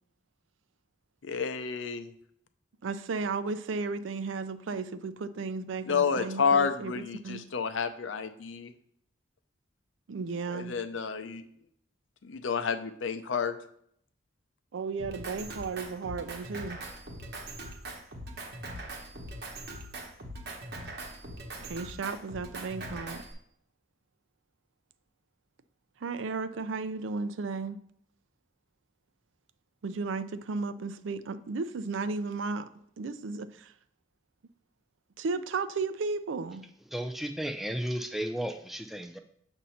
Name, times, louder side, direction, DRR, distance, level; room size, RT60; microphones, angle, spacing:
voice 1, 1.2-2.1 5.8-8.7 10.5-11.4 12.2-13.6, left 6 dB, 85° left, 0.5 m, -30 dB
voice 2, 2.8-7.4 10.1-10.8 14.7-16.8 21.6-23.2 26.0-27.8 29.8-32.7 33.0-33.7 35.2-36.6, right 4 dB, 85° right, 0.4 m, -34 dB
Drum kit, 15.0-23.3, right 1 dB, 55° right, 1.0 m, -41 dB
voice 3, 36.9-39.2, right 1 dB, ahead, 0.4 m, -34 dB
7.3 x 2.7 x 5.6 m
head